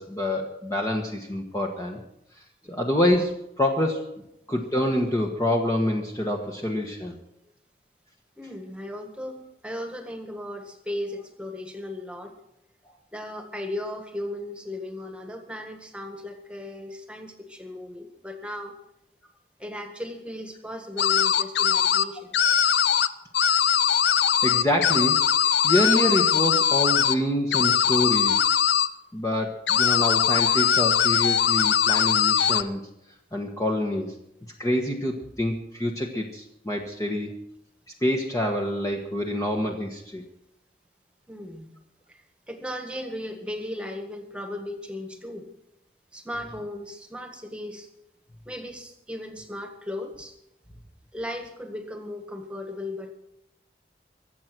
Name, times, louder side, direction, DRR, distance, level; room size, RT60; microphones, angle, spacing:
voice 1, 0.0-2.0 2.7-4.1 4.5-7.2 24.1-28.7 29.1-32.8 33.3-34.1 34.6-37.3 38.0-40.2, left 1 dB, 20° left, 1 dB, 1.3 m, -26 dB
voice 2, 8.4-12.3 13.1-18.7 19.6-22.4 41.3-41.7 42.1-45.5 46.1-47.9 48.4-50.3 51.1-53.1, left 1 dB, 5° right, 5 dB, 1.7 m, -36 dB
sound 1, 21.0-22.0 22.3-23.1 23.3-27.1 27.5-28.9 29.7-32.6, left 8 dB, 70° left, 0.6 m, -21 dB
23.5 x 8.1 x 6.1 m, 0.82 s
head